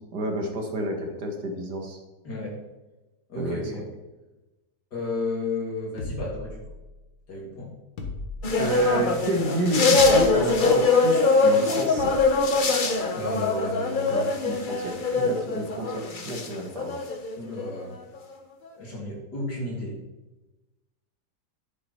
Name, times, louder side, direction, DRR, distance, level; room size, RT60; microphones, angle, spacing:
voice 1, 0.0-2.0 3.4-3.8 8.6-12.1 14.1-17.0, right 1 dB, 60° right, 2 dB, 2.2 m, -30 dB
voice 2, 2.2-2.6 3.3-3.8 4.9-6.5 7.3-7.7 13.1-14.3 17.4-18.0 18.7-20.0, left 2 dB, 60° left, -3 dB, 3.5 m, -32 dB
sound 1, 6.0-7.1 8.0-8.9 10.0-10.7 12.0-12.5, left 2 dB, 90° left, 2.1 m, -37 dB
sound 2, 8.4-16.5 16.8-17.8 18.1-18.2, left 3 dB, 40° left, 0.8 m, -22 dB
10.5 x 7.9 x 4.4 m, 1.1 s
omnidirectional pair, 2.0 m